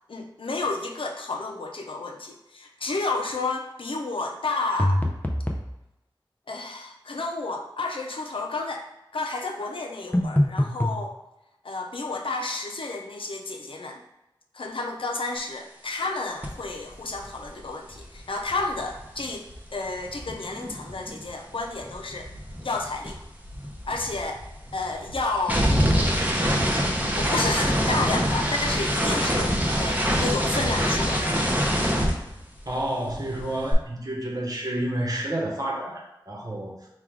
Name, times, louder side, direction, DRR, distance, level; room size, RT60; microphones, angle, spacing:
voice 1, 0.1-5.1 6.5-8.9 9.1-11.1 11.6-14.0 14.5-22.3 22.6-23.2 23.8-24.4 24.7-25.7 26.0-26.8 27.2-31.4, left 3 dB, 85° left, 2 dB, 0.5 m, -31 dB
sound 1, 4.8-5.7 10.1-11.0, left 1 dB, 20° left, 0.5 m, -23 dB
sound 2, 16.4-16.6 16.9-21.3 21.5-32.8 33.1-33.7, equal, 20° right, 0.7 m, -26 dB
voice 2, 32.7-36.8, right 1 dB, 45° right, -2 dB, 1.0 m, -30 dB
4.6 x 2.4 x 3.6 m, 0.94 s
wide cardioid pair, 60°, 9 cm